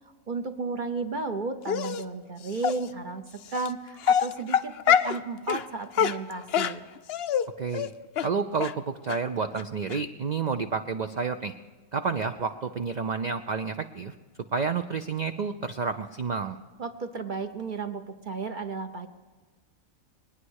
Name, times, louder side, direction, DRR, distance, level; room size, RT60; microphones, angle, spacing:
voice 1, 0.3-3.2 3.5-6.8 16.8-19.1, right 4 dB, 40° right, 7 dB, 0.8 m, -33 dB
Dog, 1.7-2.0 2.6-2.8 3.5-3.7 4.0-5.2 5.5-5.6 5.9-7.5 7.7-7.9 8.2-8.3 8.6-8.7 9.1-9.2 9.6-9.7 9.9-10.0, left 9 dB, 60° left, 0.7 m, -24 dB
voice 2, 7.6-7.9 8.2-11.5 11.9-14.1 14.5-16.6, right 5 dB, 70° right, 7 dB, 0.4 m, -30 dB
22.5 x 9.8 x 6.4 m, 1.4 s
omnidirectional pair, 1.5 m